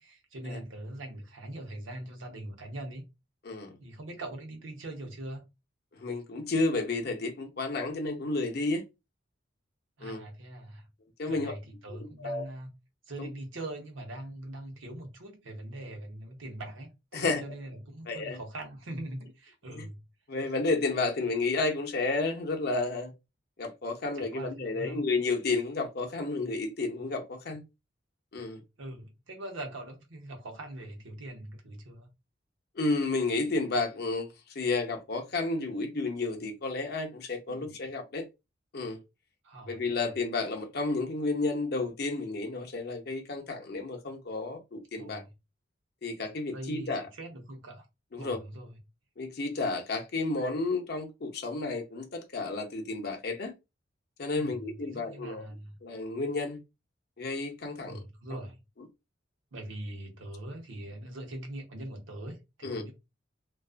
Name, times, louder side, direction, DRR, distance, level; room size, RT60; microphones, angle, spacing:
voice 1, 0.0-3.1 3.8-5.4 10.0-10.9 11.3-12.7 13.1-20.0 24.2-25.1 28.8-32.1 37.5-37.9 39.4-40.1 45.0-45.3 46.5-47.9 48.2-48.8 54.4-54.6 54.8-55.8 57.9-58.6 59.5-62.9, right 1 dB, 85° right, 0.7 m, -42 dB
voice 2, 3.4-3.8 5.9-8.8 10.0-10.2 11.2-11.5 11.9-12.4 13.2-13.3 17.1-17.4 18.1-18.4 19.7-19.9 20.3-23.1 23.6-27.6 28.3-28.6 32.7-38.3 38.7-39.0 39.7-45.2 46.0-47.1 48.1-48.4 49.2-53.5 54.2-55.4 55.8-56.6 57.2-58.0 62.6-62.8, left 3 dB, 55° left, 0.6 m, -31 dB
2.3 x 2.3 x 2.4 m
head